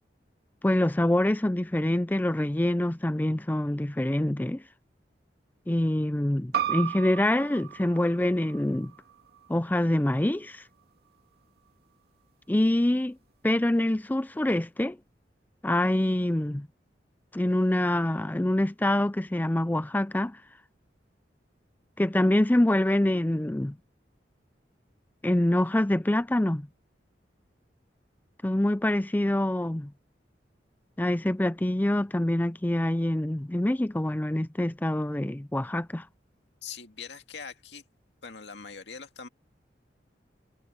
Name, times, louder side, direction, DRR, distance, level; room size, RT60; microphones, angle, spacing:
voice 1, 0.6-4.6 5.7-8.9 9.5-10.6 12.5-13.2 13.4-15.0 15.6-16.7 17.3-20.4 22.0-23.7 25.2-26.7 28.4-29.9 31.0-36.1, left 1 dB, 10° left, 0.5 m, -25 dB
sound 1, 6.5-11.7, right 9 dB, 65° right, 2.4 m, -36 dB
voice 2, 36.6-37.8 38.2-39.3, left 6 dB, 80° left, 2.1 m, -42 dB
head